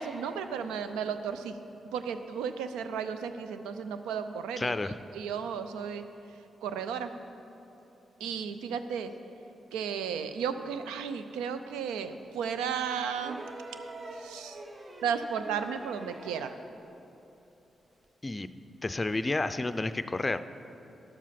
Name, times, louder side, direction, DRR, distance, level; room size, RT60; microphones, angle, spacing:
voice 1, 0.0-1.5 1.9-4.7 5.1-6.0 6.6-7.1 8.2-9.1 9.7-13.4 14.2-14.6 15.0-16.5, right 7 dB, 85° right, 10 dB, 0.5 m, -34 dB
voice 2, 4.6-5.0 18.2-18.5 18.8-20.4, left 2 dB, 30° left, 12 dB, 0.5 m, -30 dB
sound 1, 13.1-16.7 18.0-18.1, right 2 dB, 40° right, 1.0 m, -44 dB
11.0 x 7.4 x 5.8 m, 3.0 s
supercardioid pair, 45°, 0 cm